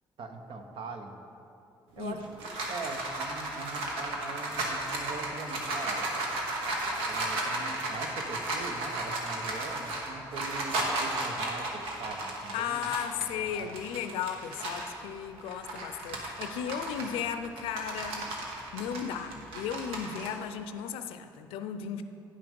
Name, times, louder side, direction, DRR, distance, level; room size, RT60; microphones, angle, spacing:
voice 1, 0.2-1.1 2.0-6.1 7.1-13.7, right 3 dB, 70° right, 5 dB, 0.9 m, -42 dB
sound 1, 2.0-14.9 15.4-20.3, right 2 dB, 90° right, 1.2 m, -34 dB
voice 2, 12.5-18.3 18.7-22.0, left 8 dB, 85° left, 10 dB, 0.5 m, -35 dB
9.5 x 5.9 x 5.2 m, 2.8 s
supercardioid pair, 70°, 9 cm